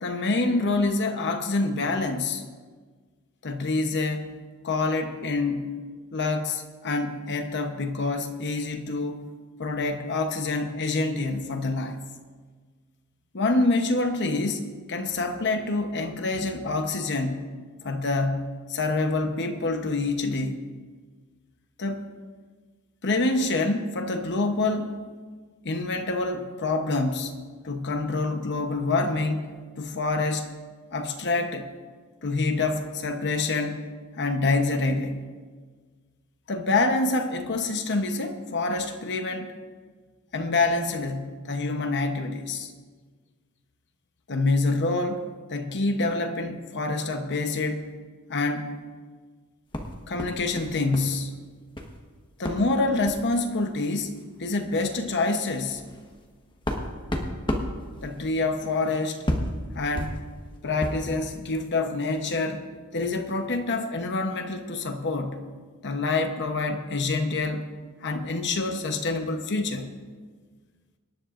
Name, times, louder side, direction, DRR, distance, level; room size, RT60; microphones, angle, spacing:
voice 1, 0.0-2.4 3.4-4.4 4.6-5.8 6.1-9.3 9.6-12.1 13.3-17.5 17.8-20.6 21.8-22.0 23.0-25.0 25.6-27.3 27.6-30.5 30.9-31.7 32.2-33.8 34.2-35.2 36.5-39.5 40.3-42.7 44.3-47.9 48.3-48.7 50.1-51.4 52.4-55.8 58.0-59.2 59.7-60.2 60.6-62.7 62.9-65.5 65.8-67.7 68.0-69.9, left 3 dB, 50° left, 0.9 m, -27 dB
sound 1, 49.7-51.1 51.4-52.0 52.4-52.7 53.0-53.3 54.2-54.3 54.6-54.8 55.3-61.1, left 1 dB, 20° left, 1.2 m, -33 dB
25.0 x 10.5 x 2.5 m
head